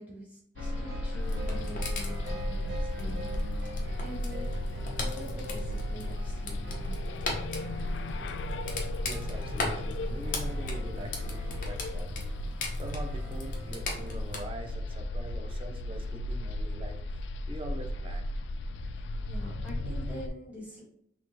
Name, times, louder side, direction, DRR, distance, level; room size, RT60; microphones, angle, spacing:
voice 1, 0.0-3.3 3.6-4.5 5.0-7.2 18.9-20.8, equal, 10° right, -6 dB, 1.5 m, -45 dB
sound 1, 0.6-20.3, left 1 dB, 80° left, 0.3 m, -35 dB
sound 2, 0.6-14.2, equal, 85° right, 0.9 m, -45 dB
sound 3, 1.2-14.4, left 3 dB, 45° left, 0.9 m, -40 dB
voice 2, 9.0-12.3 12.8-18.3, right 1 dB, 30° right, 4 dB, 0.6 m, -43 dB
5.6 x 2.9 x 3.0 m, 0.72 s
head